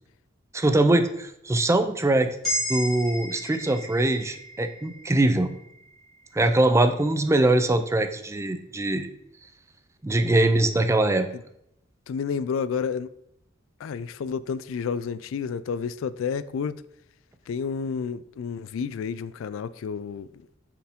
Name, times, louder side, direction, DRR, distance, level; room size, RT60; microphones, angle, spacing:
voice 1, 0.5-2.4 2.7-5.5 6.3-9.1 10.0-11.3, right 2 dB, 15° right, 0.4 m, -22 dB
sound 1, 2.4-6.7, equal, ahead, 2.6 m, -34 dB
voice 2, 12.1-13.1 13.8-16.8 17.5-20.3, left 6 dB, 85° left, 0.3 m, -30 dB
7.2 x 4.7 x 3.5 m
head